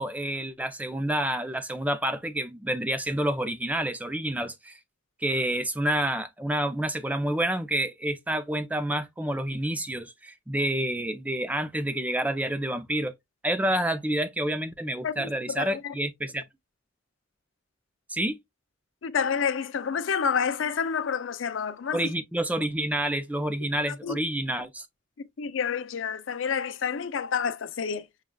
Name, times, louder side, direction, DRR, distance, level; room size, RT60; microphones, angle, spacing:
voice 1, 0.0-4.8 5.2-13.1 13.4-16.4 18.1-18.4 21.9-24.9, right 1 dB, 10° right, 0.4 m, -28 dB
voice 2, 15.0-16.0 19.0-22.1 23.9-24.2 25.2-28.0, left 6 dB, 80° left, 0.5 m, -29 dB
6.3 x 2.3 x 2.3 m
head